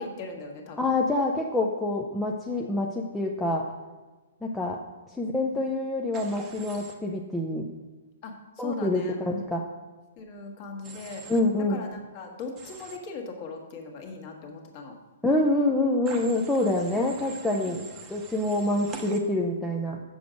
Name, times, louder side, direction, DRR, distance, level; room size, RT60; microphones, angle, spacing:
voice 1, 0.0-1.0 5.4-5.6 8.2-9.6 10.2-11.3 11.7-14.9 16.9-17.9, left 3 dB, 30° left, 2 dB, 1.3 m, -40 dB
voice 2, 0.8-3.7 4.4-4.8 5.2-7.7 8.6-9.6 11.3-11.8 15.2-17.8 18.1-20.0, left 2 dB, 5° left, -2 dB, 0.5 m, -26 dB
Human voice / Train, 6.1-6.9 10.8-11.4 12.6-13.0 16.1-19.2, right 4 dB, 15° right, 0.8 m, -44 dB
7.9 x 6.9 x 5.0 m, 1.3 s
hypercardioid pair, 170°, 0 cm